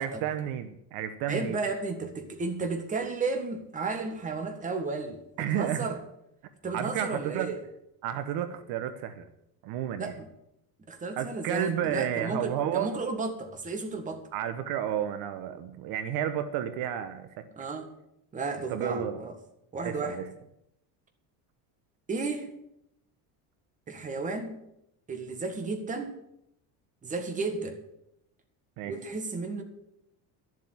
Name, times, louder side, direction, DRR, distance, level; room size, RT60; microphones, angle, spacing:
voice 1, 0.0-1.6 5.4-5.9 6.7-7.5 8.0-9.2 9.6-10.2 11.2-12.9 14.3-17.4 18.7-19.2 19.8-20.3 28.8-28.9, right 10 dB, 65° right, 11 dB, 1.1 m, -31 dB
voice 2, 1.3-6.0 6.6-7.6 10.0-10.3 10.9-14.3 17.5-17.9 18.3-19.3 19.7-20.2 22.1-22.5 23.9-24.6 25.1-26.1 27.0-27.8 28.8-29.6, right 3 dB, 20° right, 6 dB, 1.7 m, -33 dB
11.5 x 7.5 x 9.5 m, 0.80 s
cardioid pair, 160°, 38 cm